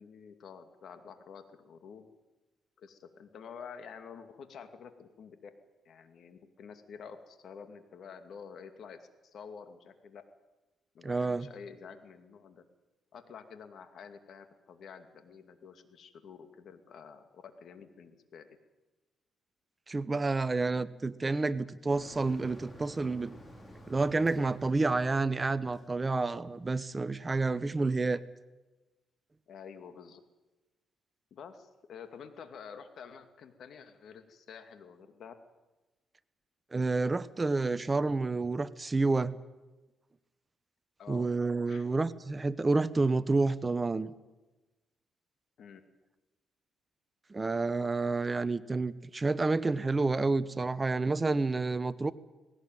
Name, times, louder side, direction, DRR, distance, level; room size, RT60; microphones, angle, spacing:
voice 1, 0.0-2.1 2.8-5.5 5.8-10.2 10.9-12.6 13.1-18.5 29.5-30.2 31.3-35.3 41.0-41.3 41.7-41.9 45.6-45.8, left 6 dB, 65° left, 8 dB, 2.4 m, -49 dB
voice 2, 11.0-11.5 19.9-23.3 23.9-28.2 36.7-39.4 41.1-44.1 47.3-52.1, right 3 dB, 25° right, 15 dB, 1.0 m, -29 dB
Motor vehicle (road), 21.9-26.9, equal, 20° left, 4.5 m, -52 dB
19.0 x 17.5 x 9.3 m, 1.1 s
cardioid pair, 90°, 0 cm